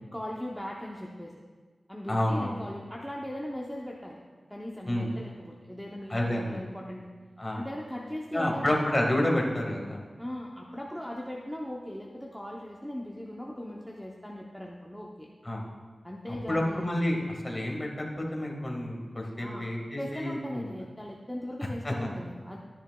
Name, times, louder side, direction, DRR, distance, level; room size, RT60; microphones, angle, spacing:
voice 1, 0.1-1.3 1.9-4.2 4.5-7.1 7.5-8.9 10.2-15.3 16.0-16.9 19.4-19.7 20.0-22.6, left 1 dB, ahead, -3 dB, 0.7 m, -39 dB
voice 2, 2.1-2.6 4.9-5.1 6.1-6.6 7.4-7.6 8.3-10.0 15.4-15.6 16.3-20.6 21.8-22.1, left 1 dB, 20° left, -1 dB, 1.6 m, -29 dB
13.0 x 10.0 x 2.3 m, 1.5 s
wide cardioid pair, 105°, 0 cm